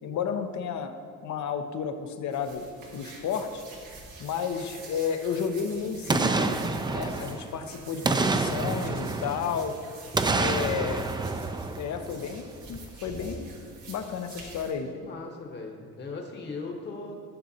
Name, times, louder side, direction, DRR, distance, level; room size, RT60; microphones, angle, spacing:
voice 1, 0.0-0.9 1.2-2.7 2.9-3.6 4.2-9.7 10.3-11.1 11.8-13.5 13.9-14.9, left 7 dB, 70° left, 7 dB, 0.8 m, -32 dB
sound 1, 2.3-14.7, right 3 dB, 90° right, 1.6 m, -47 dB
Boom, 6.1-7.6 8.0-9.7 10.1-12.4 12.8-12.9, right 3 dB, 15° right, 0.4 m, -28 dB
voice 2, 10.6-10.9 14.9-17.3, left 3 dB, 35° left, 1 dB, 1.1 m, -39 dB
12.0 x 6.4 x 2.8 m, 2.4 s
cardioid pair, 90°, 30 cm